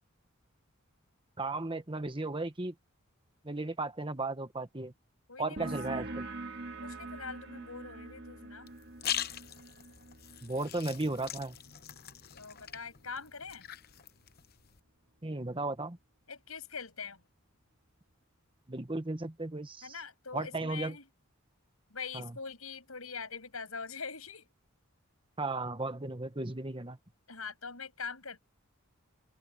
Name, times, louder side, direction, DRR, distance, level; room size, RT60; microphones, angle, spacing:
voice 1, 1.4-2.7 3.4-4.9 5.4-6.2 10.4-11.6 15.2-16.0 18.7-20.0 20.3-20.9 22.1-22.3 25.4-27.0, right 2 dB, 25° right, 1.3 m, -35 dB
voice 2, 5.3-6.1 6.8-8.7 12.3-13.6 16.3-17.2 19.8-21.0 21.9-24.5 27.3-28.4, left 5 dB, 85° left, 6.8 m, -43 dB
sound 1, 5.6-12.8, right 2 dB, 50° right, 2.1 m, -44 dB
sound 2, 8.7-14.8, left 10 dB, 45° left, 0.8 m, -42 dB
open air
head